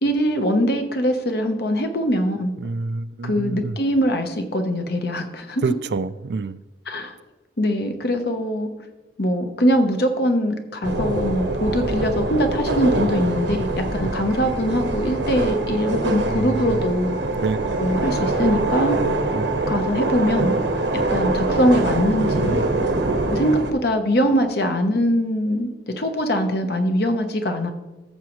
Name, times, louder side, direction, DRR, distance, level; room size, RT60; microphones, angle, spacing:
voice 1, 0.0-2.5 3.2-5.6 6.9-7.1 7.6-8.7 9.2-17.2 17.8-19.0 19.7-20.6 20.9-22.6 23.3-27.7, equal, 60° left, 6 dB, 1.0 m, -22 dB
voice 2, 2.6-3.8 5.6-6.6 16.2-16.6 17.4-17.8 19.3-19.5 22.4-22.6, right 4 dB, 60° right, 15 dB, 0.4 m, -27 dB
sound 1, 10.8-23.7, right 2 dB, 80° right, 1.1 m, -24 dB
14.0 x 7.2 x 3.1 m, 1.1 s
head